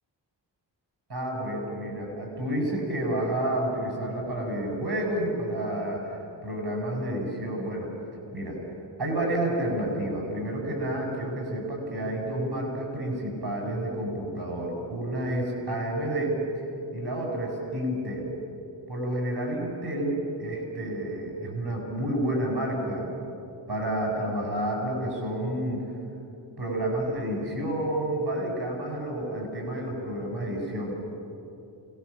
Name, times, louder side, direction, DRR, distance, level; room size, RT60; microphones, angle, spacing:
voice 1, 1.1-7.9 8.3-8.6 9.0-16.4 16.9-18.3 18.9-23.1 23.7-25.8 26.6-30.9, right 1 dB, 55° right, 0 dB, 7.9 m, -30 dB
28.5 x 18.5 x 7.4 m, 2.7 s
cardioid pair, 70°, 47 cm